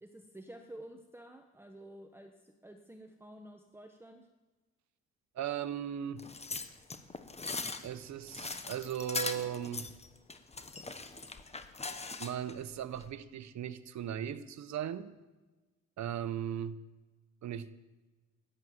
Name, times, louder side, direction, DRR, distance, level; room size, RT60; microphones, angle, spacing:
voice 1, 0.0-4.3, right 1 dB, 10° right, 5 dB, 1.2 m, -51 dB
voice 2, 5.3-6.3 6.6-6.7 7.8-9.9 12.2-15.1 16.0-16.8 17.4-17.7, right 9 dB, 65° right, 14 dB, 1.0 m, -38 dB
sound 1, 6.2-12.5 12.9-13.1, left 3 dB, 20° left, 1.3 m, -40 dB
13.5 x 11.0 x 8.0 m, 1.2 s
cardioid pair, 90°, 30 cm